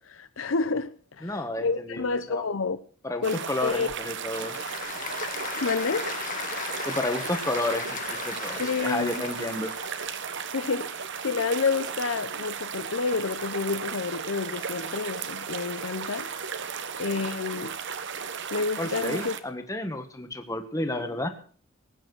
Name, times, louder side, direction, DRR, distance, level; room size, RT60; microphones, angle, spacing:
voice 1, 0.0-2.8 3.2-3.9 5.6-6.2 8.6-9.2 10.5-16.3 16.9-17.8 18.5-19.4, left 4 dB, 70° left, 0.7 m, -29 dB
voice 2, 1.2-2.4 3.0-4.5 6.9-9.7 18.8-21.3, left 1 dB, 15° left, 1.5 m, -31 dB
sound 1, 3.2-19.4, right 6 dB, 60° right, 1.2 m, -35 dB
Applause / Crowd, 3.9-10.2, left 6 dB, 40° left, 1.6 m, -37 dB
19.0 x 8.9 x 6.1 m
head